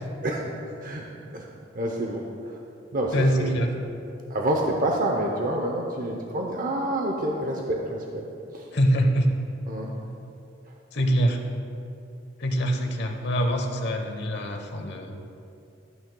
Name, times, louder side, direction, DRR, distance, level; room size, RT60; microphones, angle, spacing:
voice 1, 0.2-1.0 1.3-1.5 1.7-2.3 2.9-3.6 4.3-8.3 8.5-8.7 9.7-9.9, right 1 dB, 45° right, 0 dB, 0.7 m, -28 dB
voice 2, 3.1-3.7 8.7-9.3 10.9-11.4 12.4-15.2, equal, 60° left, 3 dB, 1.0 m, -24 dB
14.0 x 9.1 x 2.2 m, 2.7 s
head